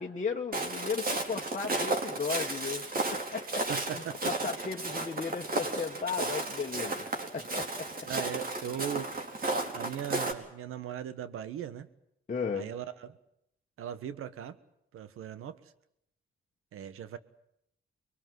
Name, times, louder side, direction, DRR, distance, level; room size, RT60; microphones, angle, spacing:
voice 1, 0.0-3.7 3.9-7.1 7.3-8.1 12.3-12.7, left 5 dB, 35° left, 0 dB, 1.6 m, -35 dB
Walk footsteps, 0.5-10.3, right 2 dB, 45° right, 4.2 m, -33 dB
voice 2, 3.7-4.2 8.0-9.1 9.7-11.9 12.5-13.2 13.8-14.6 14.9-15.6 16.7-17.2, right 9 dB, 85° right, 13 dB, 1.5 m, -38 dB
24.0 x 22.0 x 7.9 m, 0.76 s
cardioid pair, 70°, 21 cm